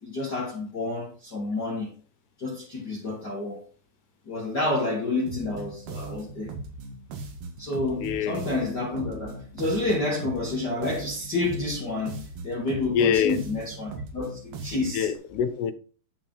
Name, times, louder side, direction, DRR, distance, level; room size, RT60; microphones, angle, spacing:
voice 1, 0.0-1.9 2.4-3.6 4.2-6.5 7.6-15.1, left 2 dB, 50° left, 1.2 m, -29 dB
sound 1, 5.3-15.1, right 3 dB, 85° right, 3.9 m, -39 dB
voice 2, 8.0-8.4 12.9-13.4 14.9-15.7, left 8 dB, 80° left, 2.7 m, -24 dB
11.0 x 4.5 x 5.3 m
omnidirectional pair, 4.7 m